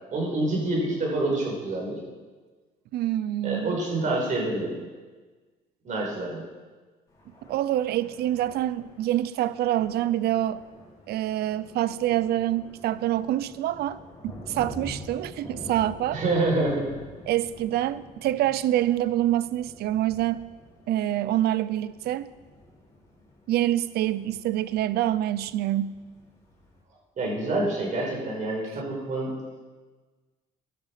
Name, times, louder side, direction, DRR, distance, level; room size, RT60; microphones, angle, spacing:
voice 1, 0.1-2.0 3.4-4.8 5.8-6.4 16.1-16.9 27.2-29.4, right 2 dB, 45° right, -2 dB, 5.7 m, -27 dB
voice 2, 2.9-3.8 7.5-10.6 11.1-16.2 17.3-20.5 20.9-22.3 23.5-26.0, right 13 dB, 70° right, 16 dB, 0.6 m, -26 dB
Thunder, 7.1-26.8, left 1 dB, 20° left, 5.1 m, -47 dB
15.0 x 11.5 x 5.1 m, 1.3 s
cardioid pair, 110°, 17 cm